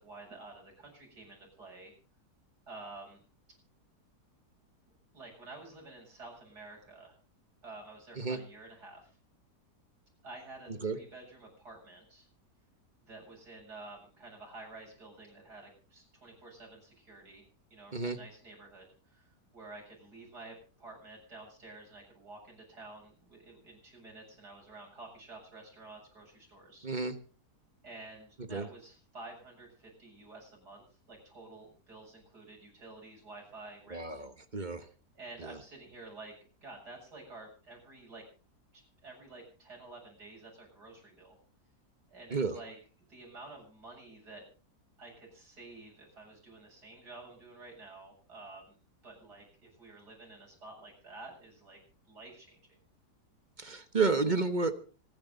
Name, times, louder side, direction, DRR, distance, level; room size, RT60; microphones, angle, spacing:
voice 1, 0.0-1.9 2.7-3.2 5.1-7.2 7.6-9.2 10.2-12.3 13.1-26.9 27.8-34.2 35.1-36.3 36.6-38.2 38.7-41.3 42.1-42.8 43.1-44.4 45.0-48.8 49.0-51.8 52.1-52.6, right 2 dB, 70° right, 0 dB, 8.3 m, -50 dB
voice 2, 26.8-27.1 28.5-28.7 33.9-34.8 35.4-35.6 42.3-42.5 53.6-54.9, right 4 dB, 30° right, 9 dB, 1.3 m, -31 dB
26.0 x 10.5 x 4.0 m, 0.36 s
omnidirectional pair, 1.8 m